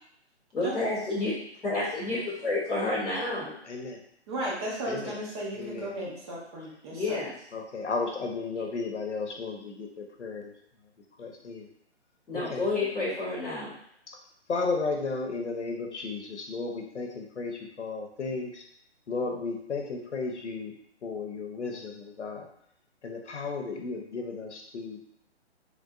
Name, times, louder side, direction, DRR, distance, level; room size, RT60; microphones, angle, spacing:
voice 1, 0.5-1.3 1.6-3.6 6.9-7.3 12.3-13.7, left 2 dB, ahead, -22 dB, 0.4 m, -29 dB
voice 2, 3.6-4.0 4.9-5.2 5.6-5.9 7.5-10.5 11.2-11.7 12.3-12.7 14.1-14.2 14.5-18.6 19.1-20.7 21.0-22.5 23.0-25.0, left 4 dB, 85° left, 2 dB, 0.7 m, -34 dB
voice 3, 4.3-7.2, right 1 dB, 25° right, -4 dB, 0.7 m, -35 dB
3.4 x 2.5 x 2.3 m, 0.70 s
figure-of-eight pair, 135°, 34 cm